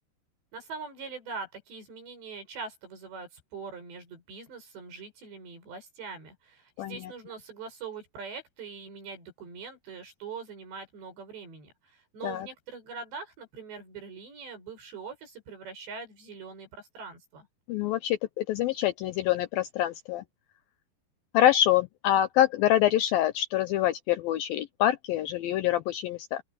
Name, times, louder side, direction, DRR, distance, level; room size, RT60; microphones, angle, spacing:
voice 1, 0.5-17.5, right 5 dB, 80° right, 10.5 m, -42 dB
voice 2, 17.7-20.2 21.3-26.4, left 12 dB, 85° left, 2.1 m, -25 dB
open air
omnidirectional pair, 4.9 m